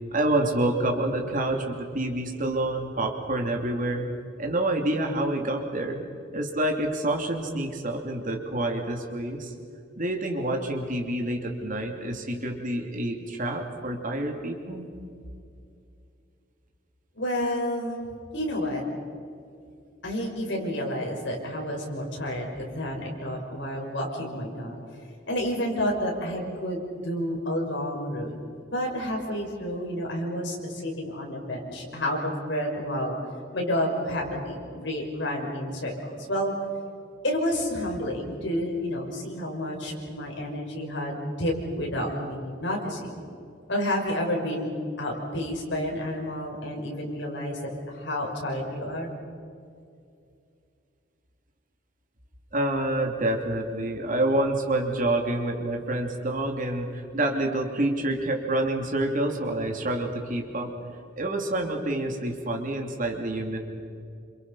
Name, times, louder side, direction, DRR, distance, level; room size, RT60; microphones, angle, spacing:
voice 1, 0.1-4.1 4.4-6.0 6.3-9.5 10.0-14.9 52.5-60.7 61.2-63.6, right 1 dB, 45° right, 2 dB, 2.9 m, -27 dB
voice 2, 17.2-18.0 18.3-18.8 20.0-24.8 25.3-28.3 28.7-33.2 33.5-36.5 37.2-43.2 43.7-44.7 45.0-47.6 47.9-49.1, equal, 65° left, -1 dB, 6.1 m, -30 dB
29.0 x 27.5 x 5.6 m, 2.4 s
head